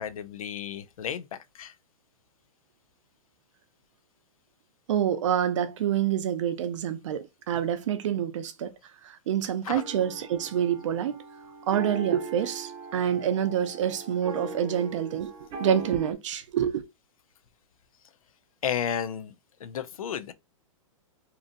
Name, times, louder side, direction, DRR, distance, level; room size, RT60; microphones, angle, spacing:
voice 1, 0.0-1.7 9.6-9.8 18.6-19.3 19.6-20.3, left 8 dB, 85° left, 0.4 m, -33 dB
voice 2, 4.9-8.7 9.0-11.2 11.7-15.3 15.6-16.8, right 9 dB, 65° right, 0.5 m, -27 dB
sound 1, 9.8-16.1, right 4 dB, 25° right, 0.8 m, -40 dB
2.8 x 2.5 x 2.5 m
hypercardioid pair, 140°, 17 cm